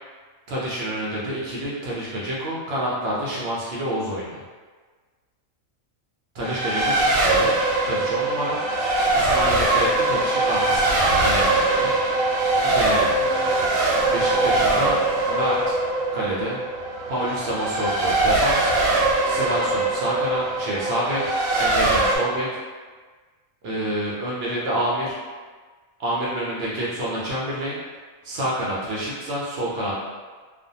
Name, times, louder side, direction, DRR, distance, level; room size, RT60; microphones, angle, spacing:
voice 1, 0.5-4.4 6.3-7.5 7.8-8.6 9.1-11.9 12.6-13.1 14.1-15.0 15.3-15.8 16.1-16.6 17.1-18.7 19.2-21.3 21.6-22.5 23.6-25.2 26.0-27.8 28.2-30.0, equal, 65° right, -6 dB, 0.6 m, -28 dB
Race car auto racing, 6.4-22.2, right 2 dB, 90° right, 1.0 m, -22 dB
2.5 x 2.1 x 2.6 m, 1.4 s
omnidirectional pair, 1.5 m